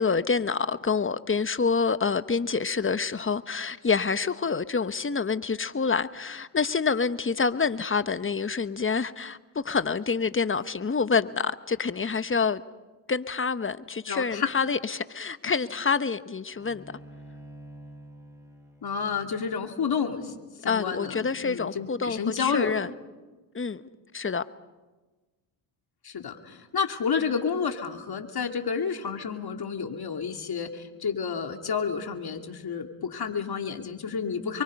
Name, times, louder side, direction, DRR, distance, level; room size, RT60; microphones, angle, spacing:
voice 1, 0.0-12.6 13.1-16.8 20.7-22.9 23.5-23.8 24.1-24.4, left 5 dB, 25° left, 1.1 m, -27 dB
voice 2, 14.1-14.5 18.8-20.3 20.6-22.8 26.0-34.6, left 6 dB, 50° left, 3.0 m, -30 dB
Bowed string instrument, 16.5-21.9, right 1 dB, 5° right, 6.8 m, -50 dB
27.5 x 23.5 x 5.4 m
supercardioid pair, 65°, 49 cm